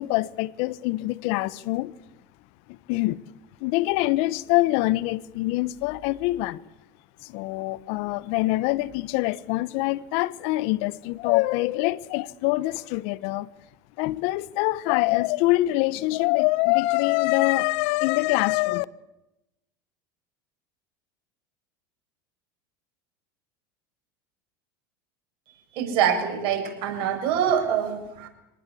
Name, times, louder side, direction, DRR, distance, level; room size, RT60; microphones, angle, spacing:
voice 1, 0.0-1.9 2.7-3.2 3.6-6.6 7.2-13.5 14.0-18.8, left 19 dB, 65° left, 1.1 m, -24 dB
voice 2, 25.7-28.3, right 8 dB, 55° right, 6.9 m, -25 dB
25.0 x 19.0 x 8.5 m
hypercardioid pair, 95°, 11 cm